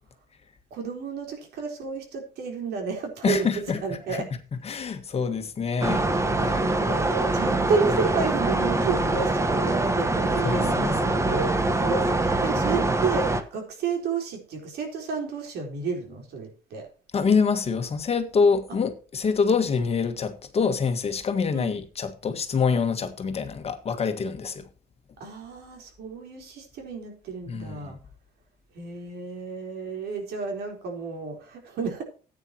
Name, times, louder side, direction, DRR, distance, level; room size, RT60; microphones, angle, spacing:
voice 1, 0.7-4.3 6.4-16.9 21.5-21.7 25.2-28.0 28.7-32.0, right 5 dB, 75° right, 4.0 m, -31 dB
voice 2, 3.2-3.8 4.1-4.2 4.6-7.0 10.4-11.3 17.1-24.7 27.5-27.9, left 5 dB, 35° left, 1.6 m, -26 dB
sound 1, 5.8-13.4, right 2 dB, 15° right, 1.2 m, -24 dB
14.5 x 9.2 x 2.9 m
cardioid pair, 110°, 17 cm